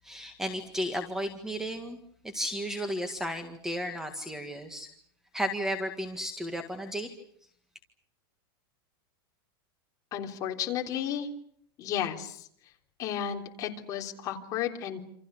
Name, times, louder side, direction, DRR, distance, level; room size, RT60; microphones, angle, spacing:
voice 1, 0.0-2.0 2.3-4.9 5.3-7.1, equal, 5° right, 7 dB, 1.8 m, -33 dB
voice 2, 10.1-11.3 11.8-12.5 13.0-15.0, left 9 dB, 30° left, 2 dB, 3.5 m, -33 dB
28.5 x 27.5 x 6.3 m, 0.66 s
supercardioid pair, 165°, 13 cm